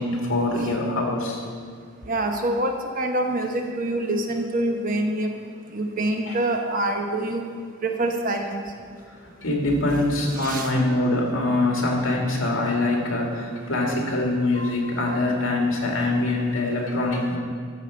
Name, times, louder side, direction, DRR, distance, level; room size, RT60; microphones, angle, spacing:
voice 1, 0.0-1.4 6.3-6.4 9.4-17.4, left 2 dB, 70° left, -1 dB, 2.2 m, -24 dB
voice 2, 2.1-5.3 5.7-7.4 7.8-8.5 10.4-10.7 14.6-14.7 15.1-15.2, right 1 dB, 40° right, 3 dB, 1.0 m, -25 dB
13.5 x 5.0 x 7.0 m, 2.1 s
head